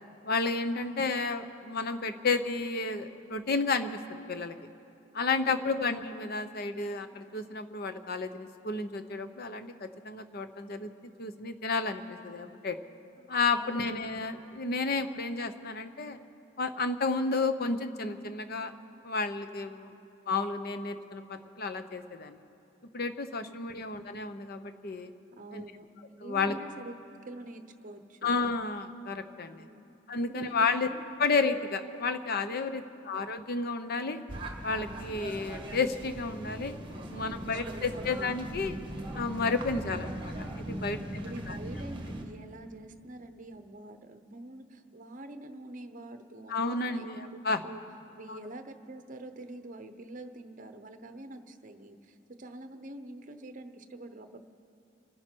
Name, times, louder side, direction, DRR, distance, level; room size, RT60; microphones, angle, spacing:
voice 1, 0.2-4.6 5.1-10.9 11.2-12.8 13.3-16.2 16.6-18.7 19.0-19.9 20.3-22.4 22.9-25.1 25.5-25.6 26.2-26.5 28.2-29.6 30.1-30.9 31.2-34.2 34.6-36.8 37.0-38.8 39.1-41.1 41.5-41.6 46.5-47.6 48.3-48.4, left 4 dB, 50° left, 9 dB, 0.8 m, -31 dB
voice 2, 5.4-5.8 13.2-13.3 13.6-13.9 19.7-20.0 23.7-23.8 25.3-26.9 27.3-28.4 29.6-29.9 30.2-31.0 37.3-38.4 41.2-47.8 48.1-54.4, right 1 dB, 40° right, 8 dB, 0.8 m, -46 dB
sound 1, 34.3-42.2, right 1 dB, 25° right, 1.4 m, -39 dB
27.0 x 10.5 x 4.5 m, 2.8 s
head